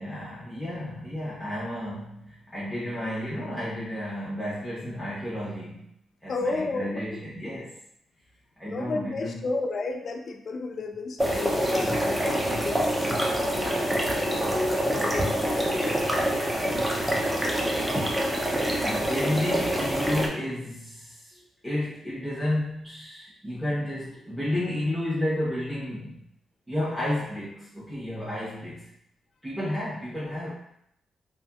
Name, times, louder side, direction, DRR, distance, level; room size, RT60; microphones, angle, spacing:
voice 1, 0.0-5.9 6.2-7.8 8.6-9.4 18.8-21.4 21.6-26.3 26.7-28.9 29.4-30.5, left 1 dB, ahead, -10 dB, 0.9 m, -32 dB
voice 2, 6.3-7.2 8.6-16.0, left 3 dB, 55° left, 4 dB, 0.3 m, -33 dB
sound 1, 11.2-20.3, equal, 15° right, 0.5 m, -26 dB
2.7 x 2.5 x 2.3 m, 0.76 s
cardioid pair, 85°, 0 cm